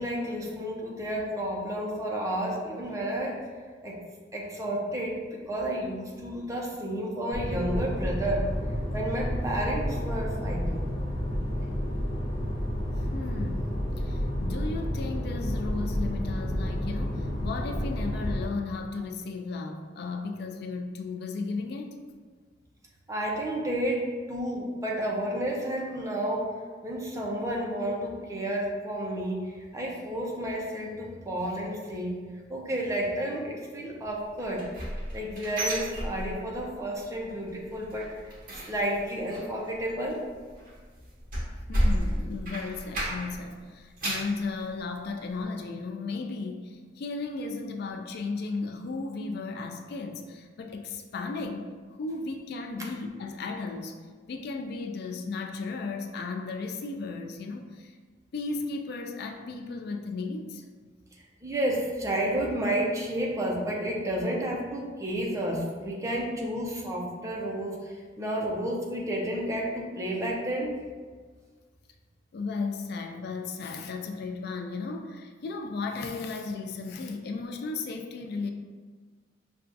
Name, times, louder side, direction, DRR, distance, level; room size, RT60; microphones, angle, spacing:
voice 1, 0.0-3.4 3.8-4.0 4.3-5.2 5.5-8.5 8.9-10.8 23.1-26.5 26.8-32.2 32.5-34.7 35.1-40.2 61.4-70.7, right 1 dB, 15° right, -3 dB, 0.6 m, -31 dB
sound 1, 7.3-18.4, equal, 25° left, 0.7 m, -30 dB
voice 2, 13.0-22.0 41.7-54.0 54.3-58.0 58.3-60.6 72.3-78.5, left 3 dB, 60° left, 4 dB, 0.3 m, -35 dB
sound 2, 34.4-36.7 37.0-37.4 37.6-43.4 43.8-44.4 44.9-45.0 45.4-45.5, equal, 50° right, 0.9 m, -32 dB
5.7 x 2.3 x 2.5 m, 1.5 s
head